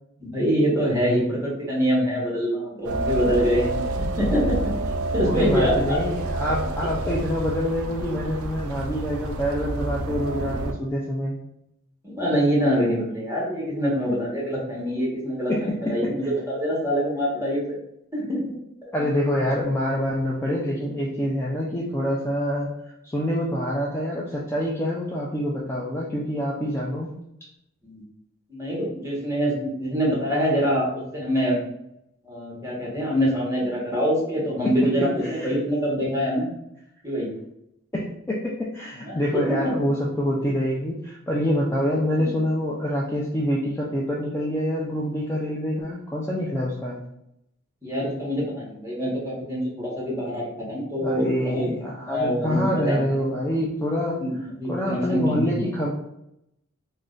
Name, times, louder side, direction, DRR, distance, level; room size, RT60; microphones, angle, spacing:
voice 1, 0.2-6.0 12.0-17.8 18.1-18.5 18.8-18.9 27.8-28.0 28.5-31.6 32.2-36.5 37.0-37.3 39.0-39.9 42.2-42.3 47.8-51.7 52.1-53.0 54.2-55.5, equal, 15° right, -5 dB, 0.9 m, -25 dB
sound 1, 2.8-10.7, right 2 dB, 85° right, 0.3 m, -28 dB
voice 2, 5.3-11.3 15.5-16.0 18.9-22.7 23.0-27.1 34.6-35.6 37.9-47.0 51.0-54.3 54.7-55.9, equal, 10° left, -5 dB, 0.3 m, -26 dB
2.4 x 2.1 x 3.7 m, 0.80 s
head